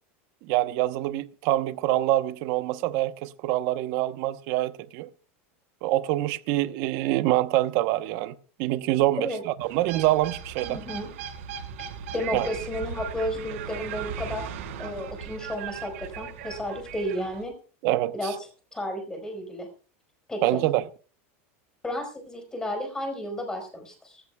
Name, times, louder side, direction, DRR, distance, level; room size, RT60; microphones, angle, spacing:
voice 1, 0.4-5.1 5.8-10.8 12.3-12.5 17.8-18.3 20.4-20.8, right 15 dB, 50° right, 0.9 m, -25 dB
sound 1, 9.6-17.4, right 7 dB, 80° right, 5.6 m, -38 dB
voice 2, 10.7-11.1 12.1-17.5 18.1-18.3 18.7-19.7 20.3-20.6 21.8-24.2, left 1 dB, 10° left, 4.5 m, -32 dB
23.5 x 14.0 x 2.3 m
supercardioid pair, 160°, 7 cm